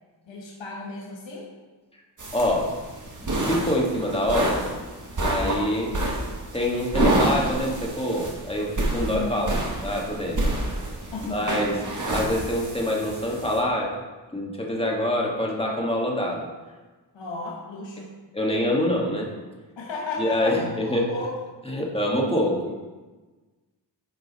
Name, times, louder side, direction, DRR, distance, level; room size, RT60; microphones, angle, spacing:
voice 1, 0.3-1.5 5.4-5.6 9.1-9.6 11.1-11.8 17.1-18.1 19.8-21.4, left 3 dB, 85° left, -2 dB, 1.4 m, -34 dB
sound 1, 2.2-13.6, right 1 dB, 45° right, 1.7 m, -28 dB
voice 2, 2.3-2.7 3.2-4.7 5.1-5.9 6.5-10.5 11.3-11.7 12.1-13.9 14.3-16.5 18.3-19.3 20.2-21.1 21.7-22.7, left 1 dB, 15° left, -2 dB, 1.7 m, -25 dB
9.7 x 5.2 x 4.1 m, 1.3 s
wide cardioid pair, 85°, 44 cm